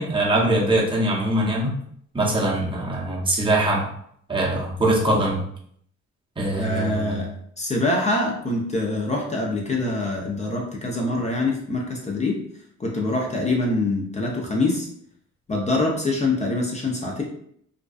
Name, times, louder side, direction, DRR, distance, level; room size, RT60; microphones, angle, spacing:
voice 1, 0.0-1.7 2.1-3.9 4.3-5.4 6.4-7.2, right 1 dB, 15° right, -4 dB, 0.7 m, -22 dB
voice 2, 6.5-7.3 7.6-12.4 12.8-14.9 15.5-17.2, left 2 dB, 25° left, -1 dB, 0.5 m, -24 dB
2.5 x 2.2 x 2.3 m, 0.67 s
cardioid pair, 90°, 30 cm